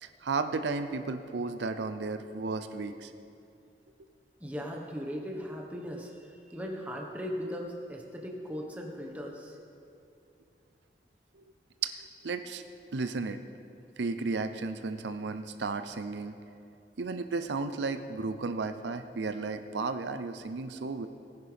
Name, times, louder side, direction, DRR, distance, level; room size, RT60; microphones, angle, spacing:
voice 1, 0.0-3.1 11.3-11.4 11.8-12.6 12.9-13.4 14.0-16.3 17.0-21.1, right 4 dB, 80° right, 9 dB, 0.6 m, -34 dB
voice 2, 4.4-9.6, equal, 10° right, 0 dB, 1.3 m, -38 dB
18.5 x 10.0 x 3.5 m, 2.5 s
head